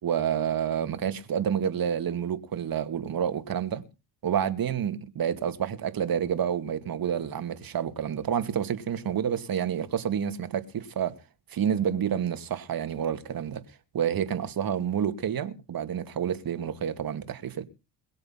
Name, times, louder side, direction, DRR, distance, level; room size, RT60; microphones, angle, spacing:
voice 1, 0.0-3.8 4.2-11.1 11.5-13.6 13.9-17.6, right 8 dB, 45° right, 2.3 m, -29 dB
22.5 x 7.8 x 5.8 m
hypercardioid pair, 60°, 49 cm